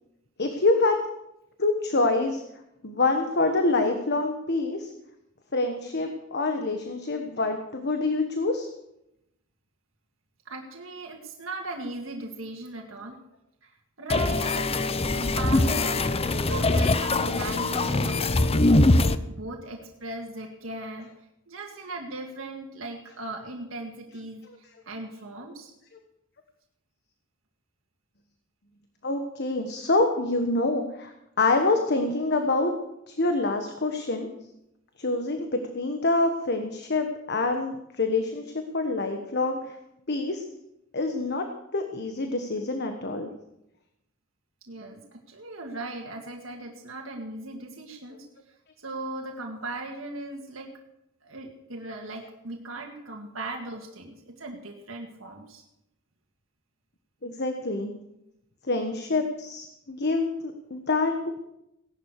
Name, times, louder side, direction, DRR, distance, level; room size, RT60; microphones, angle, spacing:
voice 1, 0.4-1.0 1.6-2.4 2.8-4.9 5.5-8.7 29.0-32.7 33.1-34.3 35.0-39.8 40.1-40.4 40.9-41.4 41.7-43.3 57.2-57.9 58.7-61.1, left 2 dB, 55° left, 5 dB, 1.4 m, -26 dB
voice 2, 10.5-13.2 13.6-13.7 14.0-16.1 16.5-18.5 19.3-21.1 21.5-25.7 44.7-48.3 48.8-50.7 51.2-55.6, right 2 dB, 80° right, 1 dB, 1.9 m, -38 dB
sound 1, 14.1-19.1, left 2 dB, 30° left, 0.7 m, -22 dB
17.5 x 11.0 x 6.6 m, 0.84 s
head